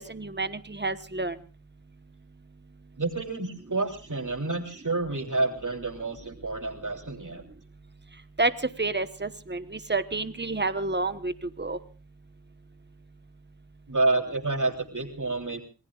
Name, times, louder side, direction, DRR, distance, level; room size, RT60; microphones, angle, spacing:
voice 1, 0.0-1.4 8.4-8.5 8.8-11.8, right 3 dB, 25° right, 12 dB, 1.2 m, -29 dB
voice 2, 3.0-7.4 13.9-15.6, right 2 dB, 50° right, 3 dB, 3.3 m, -29 dB
26.5 x 19.0 x 2.4 m, 0.34 s
wide cardioid pair, 45°, 40 cm